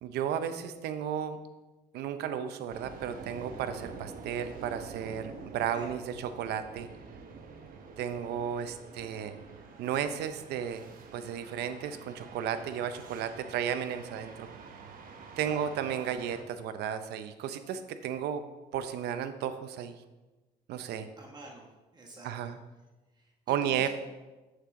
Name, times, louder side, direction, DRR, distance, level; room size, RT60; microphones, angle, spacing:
voice 1, 0.0-1.4 1.9-6.9 8.0-9.3 9.8-10.8 11.1-14.5 15.4-18.5 18.7-20.0 20.7-21.1 22.2-22.6 23.5-23.9, right 9 dB, 75° right, 10 dB, 0.7 m, -33 dB
sound 1, 2.7-16.4, right 4 dB, 55° right, 1.0 m, -47 dB
voice 2, 15.4-15.7 21.2-21.7 21.9-22.5 23.2-23.9, right 2 dB, 25° right, -1 dB, 1.3 m, -48 dB
7.5 x 6.5 x 3.7 m, 1.1 s
cardioid pair, 110°, 17 cm